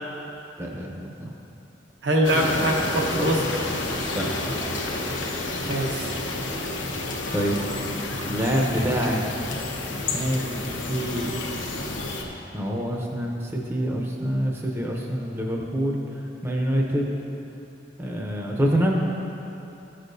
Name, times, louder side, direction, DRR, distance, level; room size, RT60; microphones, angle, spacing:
voice 1, 0.6-1.3 4.1-4.3 7.3-7.6 8.3-9.2 10.1-11.3 12.5-17.1 18.0-19.2, equal, 15° right, -1 dB, 0.6 m, -26 dB
voice 2, 2.0-3.7 5.7-6.1, right 1 dB, 75° right, 0 dB, 0.9 m, -23 dB
sound 1, 2.2-12.2, left 2 dB, 90° left, 0.9 m, -30 dB
13.0 x 6.5 x 2.6 m, 2.9 s
head